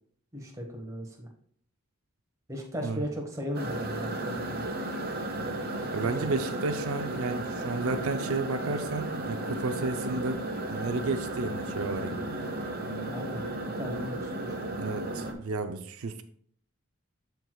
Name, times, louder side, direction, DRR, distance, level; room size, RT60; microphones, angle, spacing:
voice 1, 0.3-1.3 2.5-4.6 13.1-13.5 13.8-14.6, equal, 15° right, 0 dB, 1.3 m, -37 dB
sound 1, 3.5-15.3, right 1 dB, 45° right, 0.9 m, -34 dB
voice 2, 5.9-10.4 10.7-12.2 14.8-16.2, right 3 dB, 75° right, 8 dB, 0.5 m, -32 dB
13.5 x 4.6 x 2.3 m, 0.62 s
head